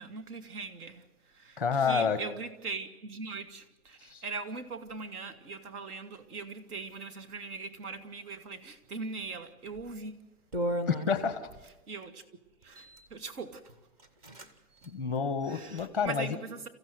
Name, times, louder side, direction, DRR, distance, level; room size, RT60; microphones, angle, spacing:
voice 1, 0.0-10.2 11.9-12.2 12.6-13.7 15.5-16.7, right 4 dB, 75° right, 2.5 m, -41 dB
voice 2, 1.6-2.2 4.0-4.2 10.9-11.4 14.8-16.4, left 6 dB, 5° right, 0.7 m, -29 dB
sound 1, 9.7-9.9 10.5-11.7 12.6-13.1 13.6-13.7 14.0-14.5 14.8-14.9 15.4-16.1, equal, 25° right, 1.0 m, -36 dB
28.0 x 15.5 x 7.9 m
hypercardioid pair, 175°, 45 cm